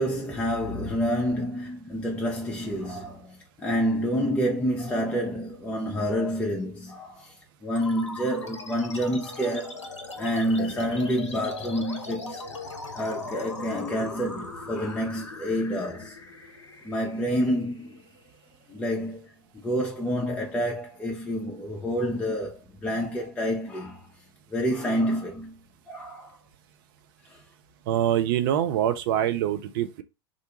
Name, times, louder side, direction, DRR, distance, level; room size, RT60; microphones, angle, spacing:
voice 1, 0.0-7.3 7.6-9.8 10.2-12.4 12.9-16.1 16.8-18.0 18.7-19.3 19.5-24.0 24.5-25.6 25.9-26.3, equal, 10° left, 0.6 m, -28 dB
sound 1, 7.8-18.7, left 2 dB, 85° left, 0.5 m, -40 dB
voice 2, 27.9-30.0, right 11 dB, 50° right, 0.5 m, -24 dB
2.5 x 2.2 x 2.9 m
figure-of-eight pair, 90°, 15 cm